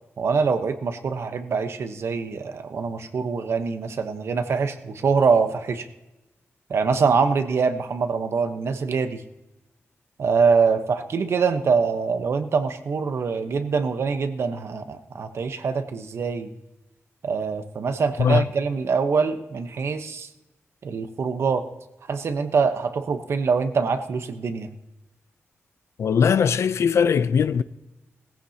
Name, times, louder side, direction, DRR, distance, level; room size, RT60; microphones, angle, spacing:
voice 1, 0.2-5.9 6.7-9.2 10.2-16.5 17.2-20.3 20.8-21.6 22.1-24.7, right 5 dB, 60° right, 1.0 m, -24 dB
voice 2, 26.0-27.6, left 6 dB, 70° left, 0.5 m, -20 dB
19.0 x 15.0 x 2.9 m
wide cardioid pair, 150°, 5 cm